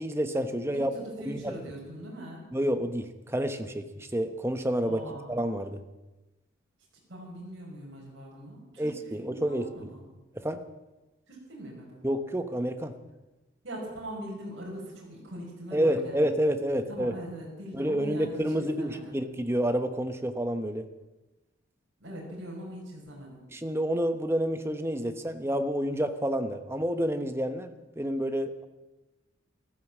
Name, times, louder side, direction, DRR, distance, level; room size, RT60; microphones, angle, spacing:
voice 1, 0.0-0.9 1.3-1.5 2.5-5.0 5.3-5.8 8.8-9.9 10.3-10.6 12.0-12.9 15.7-17.1 17.7-20.9 23.5-28.7, equal, 10° right, 8 dB, 1.0 m, -29 dB
voice 2, 0.7-2.5 4.8-5.3 7.1-8.9 9.2-10.0 11.3-12.0 13.6-16.2 16.9-19.2 22.0-23.4, right 1 dB, 60° right, -4 dB, 5.6 m, -41 dB
14.5 x 13.5 x 7.4 m, 1.1 s
head